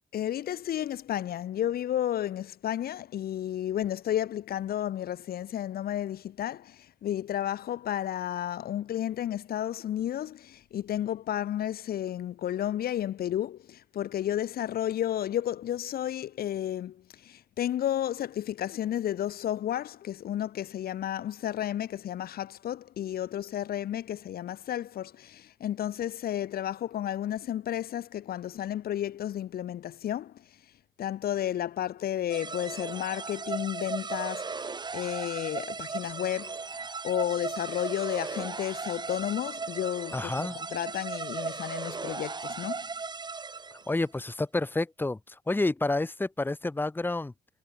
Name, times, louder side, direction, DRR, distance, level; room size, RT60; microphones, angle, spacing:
voice 1, 0.1-30.5 31.0-42.9, left 11 dB, 75° left, 3.2 m, -32 dB
sound 1, 32.3-44.0, right 4 dB, 25° right, 4.6 m, -37 dB
voice 2, 40.1-40.6 43.9-47.3, left 2 dB, 15° left, 2.5 m, -29 dB
cardioid pair, 130°, 16 cm